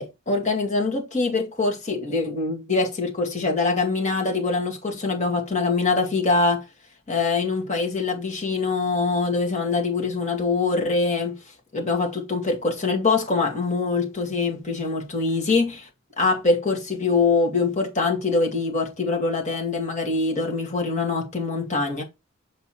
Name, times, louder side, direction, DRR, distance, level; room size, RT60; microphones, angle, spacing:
voice 1, 0.0-6.6 7.1-11.4 11.7-15.9 16.2-22.0, left 3 dB, 35° left, 2.1 m, -24 dB
7.0 x 5.3 x 2.9 m
head